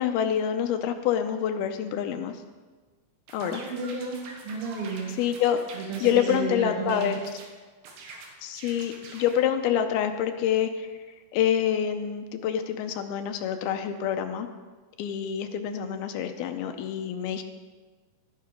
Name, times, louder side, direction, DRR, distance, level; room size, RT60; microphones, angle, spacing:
voice 1, 0.0-2.3 3.3-3.6 5.2-5.6 6.0-7.2 8.4-10.9 11.3-14.5 15.0-17.4, left 9 dB, 85° left, 7 dB, 2.5 m, -27 dB
sound 1, 3.3-6.4 6.9-7.5 7.8-9.4, right 3 dB, 90° right, 3.5 m, -45 dB
voice 2, 3.4-4.2 4.4-5.1 5.7-7.1, right 4 dB, 70° right, -4 dB, 3.2 m, -32 dB
12.5 x 9.6 x 5.1 m, 1.4 s
omnidirectional pair, 4.5 m